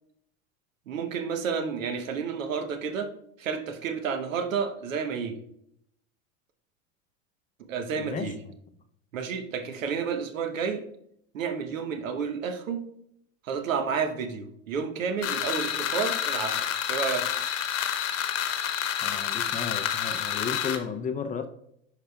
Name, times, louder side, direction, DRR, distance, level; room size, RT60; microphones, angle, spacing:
voice 1, 0.9-3.1 3.4-5.4 7.7-8.4 9.1-10.8 11.3-12.9 13.4-17.3, right 6 dB, 90° right, 7 dB, 0.9 m, -30 dB
voice 2, 8.0-8.3 19.0-21.5, left 6 dB, 20° left, 8 dB, 0.5 m, -33 dB
sound 1, 15.2-20.8, left 9 dB, 40° left, 1.0 m, -29 dB
10.0 x 4.9 x 2.3 m, 0.73 s
hypercardioid pair, 100°, 38 cm